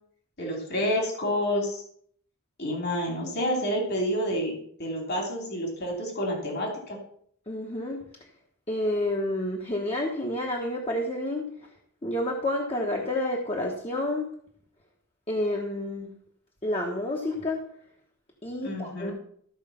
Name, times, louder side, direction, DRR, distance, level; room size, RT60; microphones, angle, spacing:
voice 1, 0.4-1.8 2.6-7.0 18.6-19.1, equal, 55° left, 0 dB, 2.9 m, -29 dB
voice 2, 7.5-8.0 8.7-11.5 12.0-14.3 15.3-16.1 16.6-17.6 18.4-19.1, left 1 dB, 30° left, -1 dB, 1.3 m, -29 dB
14.0 x 4.9 x 7.0 m, 0.64 s
head